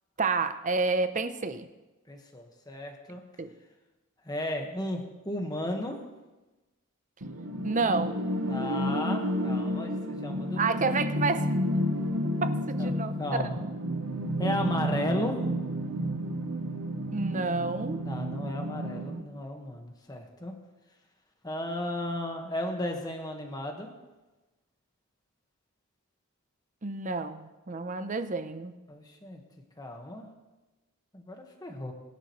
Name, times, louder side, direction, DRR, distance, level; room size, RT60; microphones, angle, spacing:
voice 1, 0.2-1.7 3.4-3.5 7.6-8.2 10.6-11.5 12.4-13.5 17.1-18.0 26.8-28.7, right 4 dB, 35° right, 10 dB, 0.7 m, -29 dB
voice 2, 2.1-3.2 4.2-6.0 8.5-10.8 12.8-12.9 13.2-13.6 14.4-15.4 18.1-20.6 21.4-23.9 28.9-29.4 29.8-30.3 31.1-31.9, left 1 dB, 20° left, 3 dB, 1.6 m, -34 dB
sound 1, 7.2-19.2, equal, 70° right, 1.2 m, -31 dB
22.0 x 10.5 x 3.2 m, 1.1 s
head